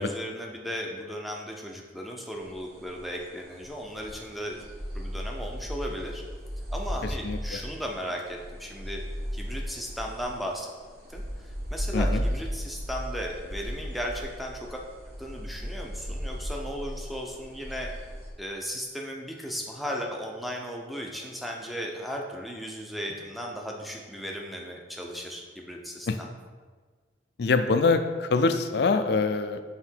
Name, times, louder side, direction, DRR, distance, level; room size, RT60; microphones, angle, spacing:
voice 1, 0.0-4.7 4.9-6.2 6.7-9.0 9.3-10.7 11.1-14.8 15.2-17.9 18.4-26.3, equal, ahead, 0 dB, 0.6 m, -36 dB
sound 1, 2.4-18.3, equal, 60° right, 1.3 m, -35 dB
voice 2, 11.9-12.2 26.1-26.2 27.4-29.6, left 4 dB, 65° left, 9 dB, 0.4 m, -24 dB
5.9 x 3.7 x 4.5 m, 1.4 s
head